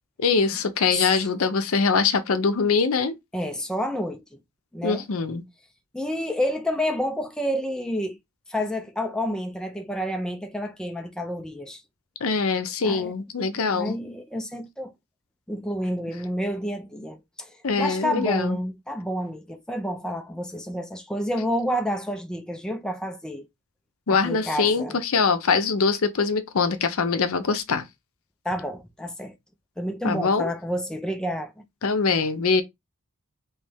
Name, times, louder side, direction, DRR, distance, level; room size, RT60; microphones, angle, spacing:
voice 1, 0.2-3.2 4.8-5.4 12.2-14.0 17.6-18.6 24.1-27.8 30.0-30.5 31.8-32.6, left 5 dB, 65° left, 0.6 m, -23 dB
voice 2, 0.9-1.3 3.3-4.4 4.7-5.0 5.9-8.2 8.5-11.8 12.8-13.1 13.5-14.9 15.5-23.5 24.1-25.0 28.4-29.3 29.8-31.6, equal, 5° left, 0.4 m, -29 dB
3.2 x 3.1 x 3.3 m
head